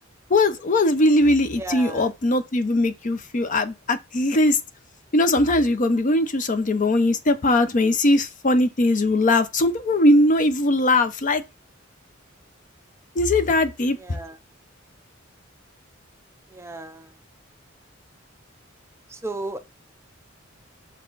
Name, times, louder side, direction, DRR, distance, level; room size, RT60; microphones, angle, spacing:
voice 1, 0.3-4.6 5.1-11.4 13.2-14.2, left 2 dB, 40° left, 0.6 m, -20 dB
voice 2, 1.6-2.1 14.0-14.4 16.5-17.1 19.1-19.6, right 2 dB, 15° right, 0.6 m, -34 dB
6.0 x 4.4 x 3.9 m
head